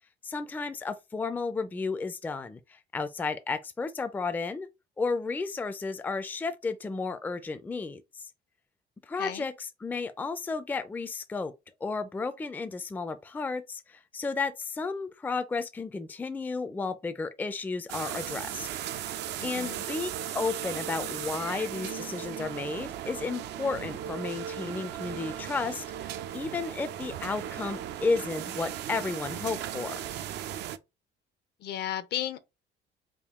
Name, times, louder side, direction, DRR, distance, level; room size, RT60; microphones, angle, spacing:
voice 1, 0.2-4.7 5.0-8.2 9.1-11.5 11.8-18.7 19.4-30.0, left 4 dB, 10° left, 0.3 m, -33 dB
sound 1, 17.9-30.8, right 10 dB, 70° right, 0.4 m, -37 dB
voice 2, 19.4-19.8 31.6-32.4, left 11 dB, 65° left, 0.6 m, -34 dB
3.6 x 2.3 x 3.5 m
cardioid pair, 120°, 18 cm